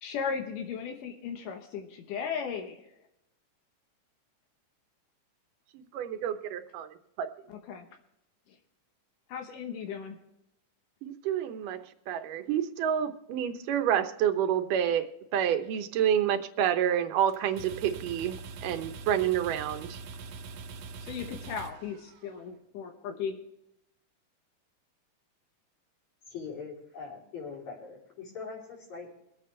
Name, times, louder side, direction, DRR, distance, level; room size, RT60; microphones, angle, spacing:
voice 1, 0.0-2.9 7.5-7.9 9.3-10.2 21.0-23.4, left 6 dB, 90° left, 3 dB, 2.7 m, -36 dB
voice 2, 5.7-7.3 11.0-11.8 12.1-20.0, right 9 dB, 90° right, 7 dB, 2.5 m, -29 dB
sound 1, 17.3-22.5, right 4 dB, 70° right, 1.7 m, -43 dB
voice 3, 26.3-29.1, left 5 dB, 60° left, -4 dB, 4.7 m, -42 dB
23.5 x 8.5 x 3.3 m, 0.84 s
omnidirectional pair, 3.7 m